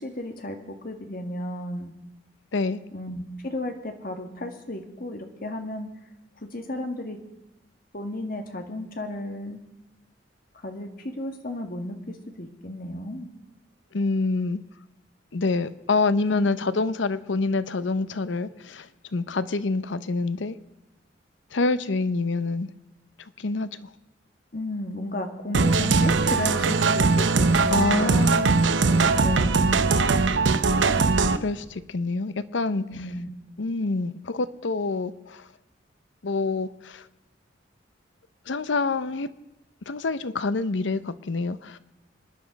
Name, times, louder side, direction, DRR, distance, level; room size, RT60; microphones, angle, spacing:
voice 1, 0.0-1.9 2.9-5.9 6.4-7.2 7.9-9.6 10.5-10.9 11.2-13.3 16.3-16.5 24.5-28.3 28.9-29.8 32.7-33.3, left 1 dB, 50° left, 5 dB, 1.9 m, -34 dB
voice 2, 13.9-14.6 15.3-20.6 21.5-22.7 23.4-23.9 27.7-28.6 31.4-32.8 33.6-35.5 36.2-37.1 38.5-39.3 39.9-41.8, left 3 dB, 70° left, 15 dB, 0.7 m, -26 dB
sound 1, 25.5-31.4, right 4 dB, 75° right, 0.8 m, -20 dB
25.5 x 10.5 x 5.2 m, 0.92 s
head